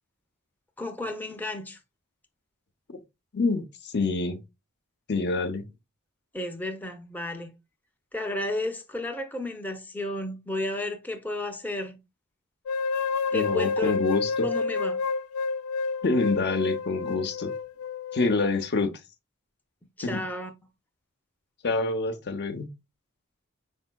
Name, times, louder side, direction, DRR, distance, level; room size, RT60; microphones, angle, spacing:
voice 1, 0.8-1.8 6.3-7.5 8.1-12.0 13.3-14.0 14.4-15.0 20.0-20.5, left 1 dB, 10° left, 0.6 m, -32 dB
voice 2, 3.3-4.4 5.1-5.6 13.3-14.5 16.0-17.5 18.1-18.9 20.0-20.2 21.6-22.7, left 3 dB, 55° left, 0.7 m, -26 dB
sound 1, 12.7-18.7, left 4 dB, 80° left, 0.3 m, -29 dB
5.3 x 4.5 x 2.2 m
head